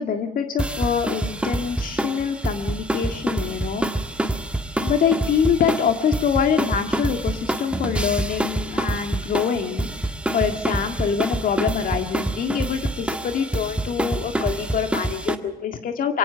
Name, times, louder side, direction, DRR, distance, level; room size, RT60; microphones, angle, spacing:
voice 1, 0.0-3.8 4.8-16.2, left 7 dB, 55° left, 7 dB, 2.0 m, -25 dB
sound 1, 0.6-15.4, right 1 dB, 5° right, 1.6 m, -27 dB
23.5 x 18.0 x 7.0 m, 0.88 s
cardioid pair, 110°, 17 cm